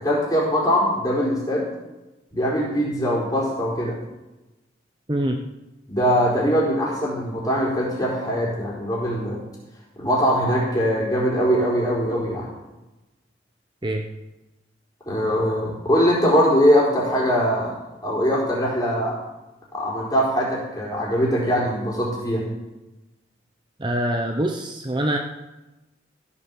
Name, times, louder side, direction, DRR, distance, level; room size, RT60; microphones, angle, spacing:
voice 1, 0.0-1.7 2.3-4.0 5.9-9.4 10.0-12.5 15.0-17.7 18.0-19.1 19.7-22.5, equal, 20° left, -4 dB, 4.3 m, -21 dB
voice 2, 5.1-5.4 13.8-14.0 23.8-25.2, right 1 dB, 25° right, 3 dB, 0.9 m, -24 dB
15.0 x 7.2 x 7.2 m, 1.0 s
head